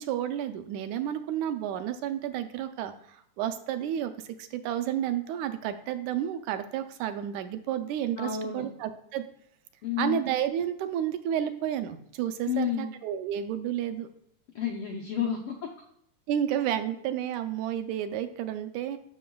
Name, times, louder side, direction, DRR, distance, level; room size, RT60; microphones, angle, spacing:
voice 1, 0.0-9.3 10.0-14.1 16.3-19.0, right 10 dB, 80° right, 8 dB, 1.9 m, -31 dB
voice 2, 8.2-8.6 9.8-10.2 12.5-12.9 14.5-15.5, left 8 dB, 80° left, 0 dB, 1.2 m, -30 dB
9.3 x 6.6 x 2.3 m, 0.71 s
omnidirectional pair, 3.4 m